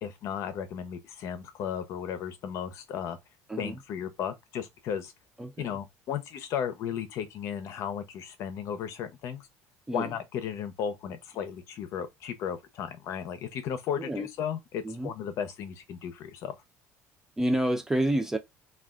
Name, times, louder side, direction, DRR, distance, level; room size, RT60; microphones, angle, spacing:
voice 1, 0.0-3.2 3.6-5.1 5.6-9.5 9.9-16.6, left 8 dB, 55° left, 0.7 m, -35 dB
voice 2, 5.4-5.7 9.9-10.1 14.0-14.3 14.8-15.1 17.4-18.4, right 1 dB, 10° right, 0.3 m, -29 dB
3.4 x 2.3 x 2.4 m
cardioid pair, 150°, 6 cm